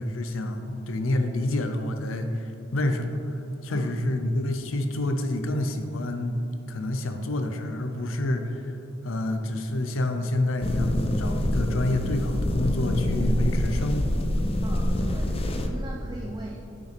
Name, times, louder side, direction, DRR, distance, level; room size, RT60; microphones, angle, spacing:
voice 1, 0.0-6.4 6.7-8.8 9.0-14.3, left 1 dB, 80° left, 6 dB, 0.7 m, -28 dB
voice 2, 3.7-4.1 14.6-16.6, right 2 dB, 20° right, 0 dB, 0.5 m, -39 dB
sound 1, 10.6-15.7, left 1 dB, 30° left, 0.5 m, -26 dB
8.4 x 6.5 x 3.3 m, 2.8 s
head